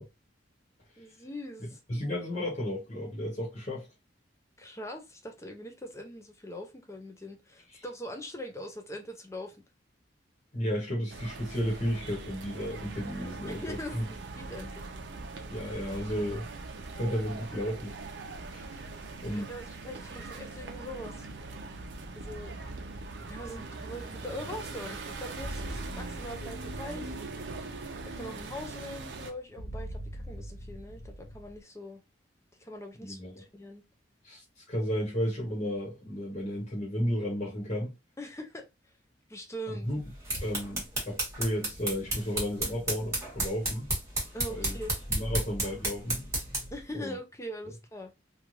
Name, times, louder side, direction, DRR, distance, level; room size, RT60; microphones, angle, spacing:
voice 1, 1.0-1.8 4.6-9.6 13.5-14.9 19.2-21.1 22.1-22.6 23.3-27.1 28.0-32.0 32.6-33.8 38.2-38.7 39.3-39.9 44.3-44.9 46.7-48.1, equal, 15° left, 0.6 m, -42 dB
voice 2, 1.9-3.9 10.5-14.1 15.5-16.5 17.0-18.0 18.5-18.7 19.2-19.5 33.0-33.4 34.2-34.4 34.7-37.9 39.7-40.0 40.4-43.9 44.5-44.8 45.1-46.3 46.9-47.2, equal, 40° left, 1.2 m, -33 dB
sound 1, 11.1-29.3, right 3 dB, 70° right, 0.5 m, -41 dB
sound 2, 22.2-31.6, equal, 70° left, 0.5 m, -44 dB
sound 3, 40.0-46.8, right 2 dB, 15° right, 1.3 m, -33 dB
3.2 x 2.4 x 2.4 m
head